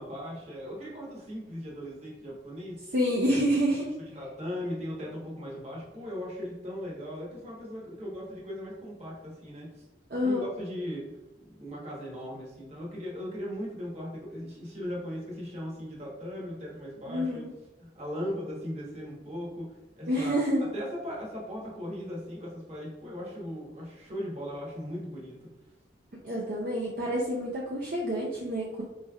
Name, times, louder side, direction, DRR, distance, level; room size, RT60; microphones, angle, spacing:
voice 1, 0.0-2.8 4.0-9.8 10.2-11.1 11.4-17.4 17.8-20.4 20.7-25.4, equal, 35° right, -4 dB, 1.1 m, -38 dB
voice 2, 2.9-3.9 10.1-10.4 17.1-17.5 20.1-20.6 26.2-28.8, equal, 55° right, -4 dB, 0.5 m, -28 dB
4.2 x 3.2 x 2.3 m, 1.0 s
head